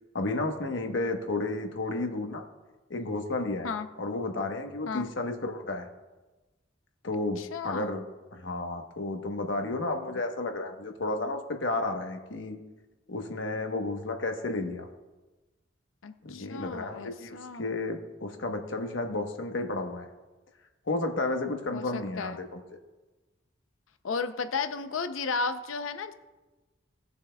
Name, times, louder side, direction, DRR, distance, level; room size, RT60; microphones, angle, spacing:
voice 1, 0.1-2.4 2.9-3.7 4.0-5.9 7.0-8.0 8.3-12.6 13.1-14.9 16.2-20.1 20.9-22.6, left 2 dB, 70° left, 4 dB, 1.1 m, -32 dB
voice 2, 7.4-8.0 16.0-17.7 21.7-22.4 24.0-26.1, left 4 dB, 90° left, 9 dB, 0.6 m, -34 dB
18.0 x 6.9 x 2.3 m, 1.2 s
head